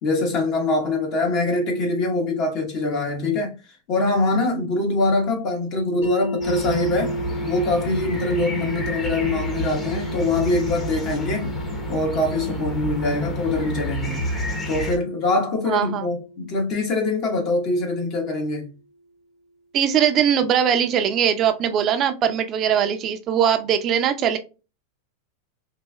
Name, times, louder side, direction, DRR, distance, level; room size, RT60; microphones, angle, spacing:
voice 1, 0.0-3.5 3.9-7.1 7.4-11.6 11.9-14.3 14.7-18.7, left 2 dB, 45° left, 1.2 m, -23 dB
sound 1, 6.0-17.9, right 1 dB, 75° left, 1.3 m, -34 dB
sound 2, 6.4-15.0, left 1 dB, 20° left, 0.9 m, -29 dB
voice 2, 15.7-16.1 19.7-24.4, right 8 dB, 35° right, 0.5 m, -21 dB
4.1 x 2.6 x 2.2 m
supercardioid pair, 135°, 0 cm